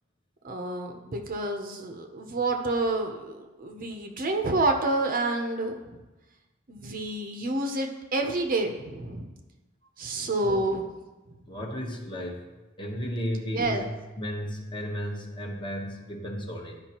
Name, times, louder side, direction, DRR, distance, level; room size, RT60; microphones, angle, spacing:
voice 1, 0.4-6.0 6.7-9.3 10.0-10.9 13.3-13.8, right 2 dB, 45° right, 4 dB, 0.7 m, -29 dB
voice 2, 11.5-12.4 12.8-13.9 14.2-16.8, equal, 25° left, 1 dB, 0.9 m, -34 dB
12.0 x 5.0 x 2.9 m, 1.1 s
head